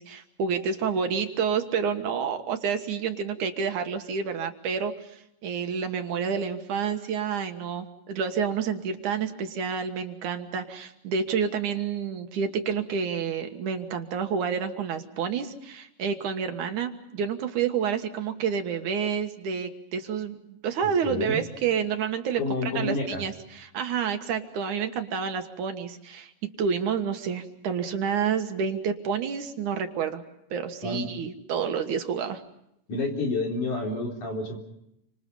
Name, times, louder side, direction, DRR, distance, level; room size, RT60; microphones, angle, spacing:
voice 1, 0.0-30.2 30.5-32.4, right 6 dB, 65° right, 6 dB, 2.8 m, -29 dB
voice 2, 20.8-21.4 22.4-23.2 30.8-31.1 32.9-34.6, left 3 dB, 60° left, 1 dB, 5.3 m, -29 dB
30.0 x 26.0 x 5.5 m, 0.80 s
omnidirectional pair, 3.9 m